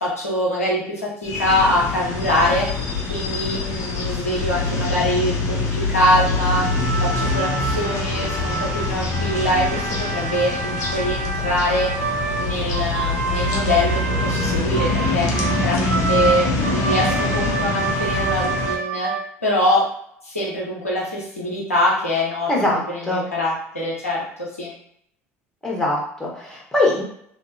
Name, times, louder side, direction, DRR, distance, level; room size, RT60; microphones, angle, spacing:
voice 1, 0.0-2.7 3.1-6.7 7.0-11.9 12.4-15.3 15.6-19.1 19.4-19.8 20.2-22.5 22.9-24.7, left 1 dB, 85° left, -5 dB, 0.8 m, -23 dB
sound 1, 1.2-18.7, left 3 dB, 45° left, 0.7 m, -24 dB
sound 2, 6.5-19.5, right 4 dB, 80° right, 0.4 m, -28 dB
voice 2, 22.5-23.3 25.6-27.0, left 2 dB, 5° left, -4 dB, 1.3 m, -22 dB
3.0 x 2.6 x 2.7 m, 0.69 s
figure-of-eight pair, 60°, 7 cm